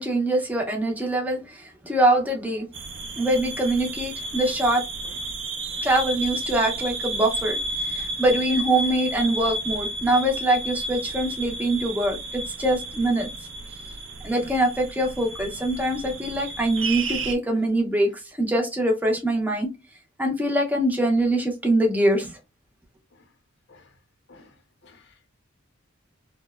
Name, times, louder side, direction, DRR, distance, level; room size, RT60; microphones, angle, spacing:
voice 1, 0.0-2.7 3.1-4.8 5.8-7.6 7.9-13.3 14.2-19.7 20.2-22.4, right 1 dB, 10° right, 0.5 m, -23 dB
sound 1, 2.7-17.4, right 2 dB, 60° right, 0.4 m, -32 dB
voice 2, 24.8-25.3, left 3 dB, 55° left, 0.5 m, -52 dB
2.8 x 2.0 x 2.3 m
head